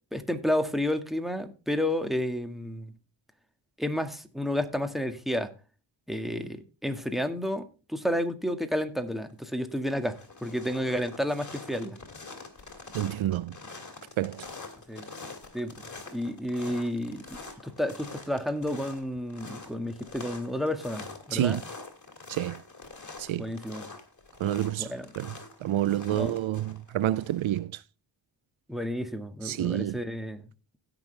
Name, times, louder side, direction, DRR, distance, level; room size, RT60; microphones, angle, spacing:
voice 1, 0.1-2.9 3.8-5.5 6.1-12.0 14.9-15.1 15.5-15.7 16.1-17.4 17.6-21.6 23.4-23.9 24.8-25.1 26.1-26.4 28.7-30.4, left 1 dB, ahead, 1.6 m, -31 dB
sound 1, 9.0-9.4 9.7-27.6, left 3 dB, 40° left, 2.6 m, -45 dB
voice 2, 12.9-13.5 14.2-14.5 21.3-21.6 22.3-22.6 23.2-23.5 24.4-24.9 25.2-25.3 25.6-27.8 29.4-30.0, right 13 dB, 80° right, 0.5 m, -28 dB
17.0 x 6.1 x 3.3 m
cardioid pair, 55°, 46 cm